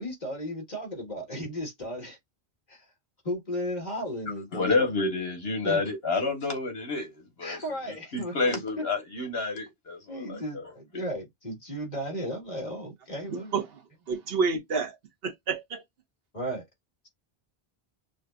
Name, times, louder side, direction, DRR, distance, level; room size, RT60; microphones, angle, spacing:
voice 1, 0.0-2.2 2.7-2.8 3.2-4.9 5.6-5.8 7.4-8.6 10.1-13.5 16.3-16.7, equal, 45° left, 2.0 m, -35 dB
voice 2, 4.5-10.7, left 3 dB, 75° left, 1.7 m, -29 dB
voice 3, 13.3-13.8 14.1-15.0 15.2-15.8, right 5 dB, 70° right, 1.1 m, -29 dB
6.1 x 2.2 x 2.4 m
omnidirectional pair, 1.0 m